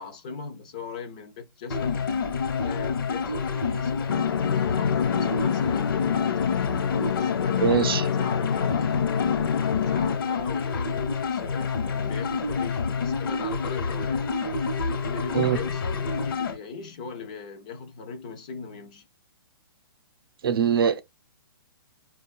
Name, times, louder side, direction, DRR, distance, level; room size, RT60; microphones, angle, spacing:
voice 1, 0.0-2.1 2.6-6.3 7.1-9.0 9.5-14.4 15.0-19.1, left 5 dB, 20° left, 0.4 m, -39 dB
sound 1, 1.7-16.6, left 5 dB, 65° left, 0.9 m, -28 dB
sound 2, 4.1-10.2, left 8 dB, 80° left, 0.5 m, -27 dB
voice 2, 7.6-8.0 15.3-15.6 20.4-21.0, right 7 dB, 70° right, 0.6 m, -22 dB
5.0 x 2.2 x 2.3 m
hypercardioid pair, 175°, 12 cm